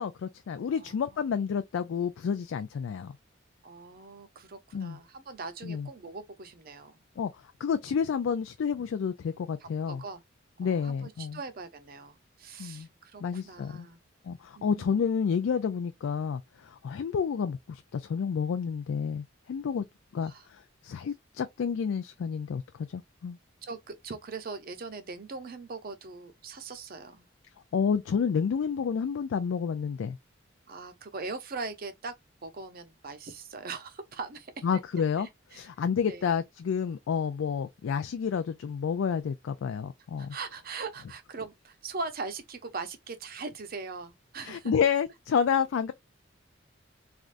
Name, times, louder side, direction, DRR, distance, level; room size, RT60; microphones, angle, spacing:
voice 1, 0.0-3.1 4.7-5.0 5.6-5.9 7.2-7.3 7.6-10.0 10.6-11.4 12.6-12.9 13.2-13.9 14.2-19.8 20.1-23.4 27.7-30.2 34.6-40.4 44.4-45.9, left 6 dB, 85° left, 0.3 m, -30 dB
voice 2, 0.7-1.2 3.6-7.0 9.6-10.2 10.6-14.0 14.6-15.0 20.2-20.4 23.6-27.3 30.7-32.1 32.4-34.6 35.2-35.6 36.1-36.2 40.2-44.7, right 4 dB, 50° right, 0.6 m, -41 dB
3.3 x 2.4 x 2.5 m
head